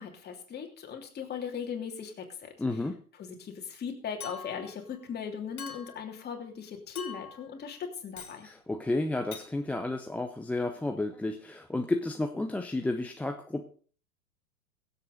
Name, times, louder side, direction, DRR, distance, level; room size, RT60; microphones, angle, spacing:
voice 1, 0.0-2.5 3.2-8.5, left 7 dB, 20° left, 3 dB, 3.0 m, -38 dB
voice 2, 2.6-3.0 8.4-13.6, left 2 dB, 5° left, 4 dB, 0.6 m, -32 dB
Chink clink, 4.2-4.7 5.6-6.0 7.0-7.5 8.2-8.4 9.3-9.5, left 6 dB, 75° left, 2.7 m, -43 dB
23.0 x 8.0 x 4.0 m, 0.43 s
figure-of-eight pair, 95°, 44 cm